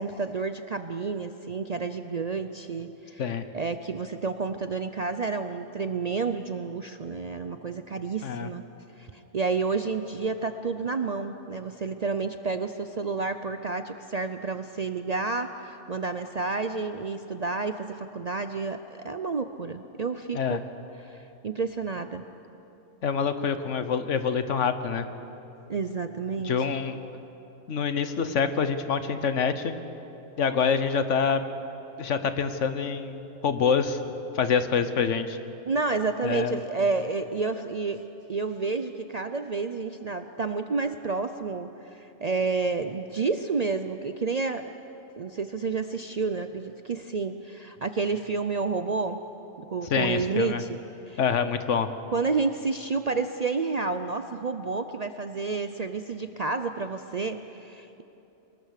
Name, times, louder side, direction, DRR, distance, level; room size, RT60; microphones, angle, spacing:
voice 1, 0.0-3.2 3.5-8.6 9.0-20.6 21.0-22.2 25.7-26.6 35.6-38.0 38.3-44.7 45.2-49.2 49.6-50.8 51.1-51.2 52.1-58.0, right 4 dB, 45° right, 9 dB, 0.5 m, -30 dB
voice 2, 23.0-25.0 26.4-27.0 27.7-29.7 30.4-31.4 32.0-34.0 34.3-35.4 36.2-36.6 49.8-50.6 51.2-51.9, left 6 dB, 70° left, 10 dB, 1.3 m, -26 dB
24.5 x 20.0 x 6.6 m, 3.0 s
omnidirectional pair, 1.3 m